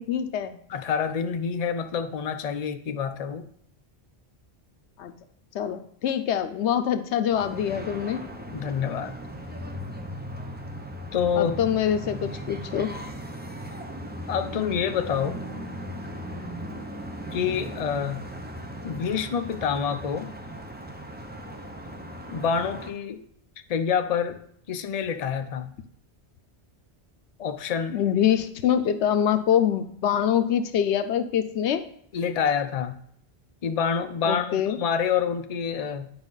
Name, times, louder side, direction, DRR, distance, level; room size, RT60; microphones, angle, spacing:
voice 1, 0.0-0.6 5.0-5.1 5.5-8.2 11.4-12.9 27.9-31.8 34.2-34.8, left 9 dB, 90° left, 10 dB, 0.9 m, -24 dB
voice 2, 0.7-3.4 8.5-9.2 11.1-11.6 14.3-15.4 17.3-18.2 18.8-20.3 22.3-23.2 23.7-24.4 24.7-25.7 27.4-28.0 32.1-33.0 33.6-36.1, left 7 dB, 45° left, 8 dB, 0.6 m, -27 dB
sound 1, 7.3-22.9, equal, 10° right, 0.7 m, -38 dB
9.7 x 4.9 x 3.9 m, 0.66 s
omnidirectional pair, 1.1 m